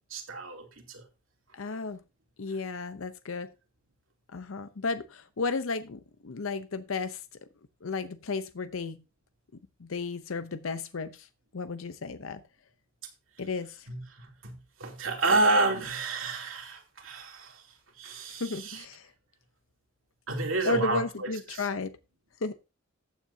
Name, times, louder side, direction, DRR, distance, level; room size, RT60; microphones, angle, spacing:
voice 1, 0.1-1.0 13.9-14.5 14.8-17.6 18.0-18.8 20.3-21.7, right 2 dB, 80° right, 2.9 m, -30 dB
voice 2, 1.5-2.0 2.4-3.5 4.3-7.2 7.8-9.0 9.8-11.3 11.5-12.4 13.4-13.9 18.3-19.1 20.6-22.0 22.4-22.5, left 4 dB, 80° left, 0.7 m, -33 dB
14.5 x 9.2 x 2.7 m
head